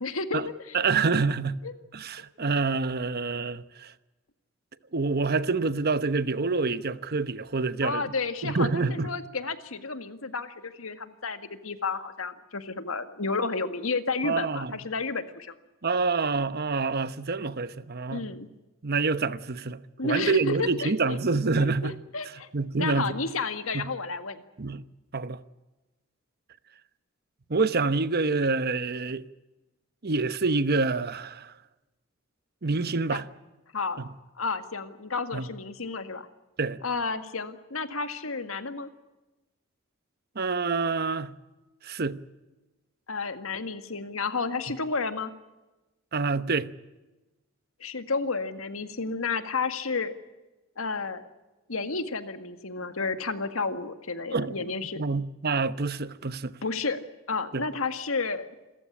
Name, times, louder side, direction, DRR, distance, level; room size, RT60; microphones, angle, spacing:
voice 1, 0.0-0.7 1.6-1.7 7.8-15.5 18.1-18.5 20.0-21.2 21.6-22.5 22.8-24.4 33.1-33.3 33.7-34.0 34.4-36.3 36.8-38.9 43.1-45.3 47.8-50.1 50.8-51.2 51.7-55.0 56.6-57.0 57.3-58.5, left 4 dB, 85° left, 1.9 m, -31 dB
voice 2, 0.7-1.6 1.9-3.9 4.9-8.0 8.4-9.1 14.2-14.7 15.8-18.3 18.8-19.8 20.0-21.9 22.5-23.2 23.7-23.9 24.6-24.8 25.1-25.4 27.5-29.2 30.0-31.5 32.6-33.2 34.0-34.1 35.3-35.4 36.6-36.8 40.4-41.3 41.8-42.2 46.1-46.7 54.3-54.5 55.0-56.6 57.5-57.6, right 4 dB, 50° right, 1.0 m, -27 dB
28.0 x 15.0 x 10.0 m
head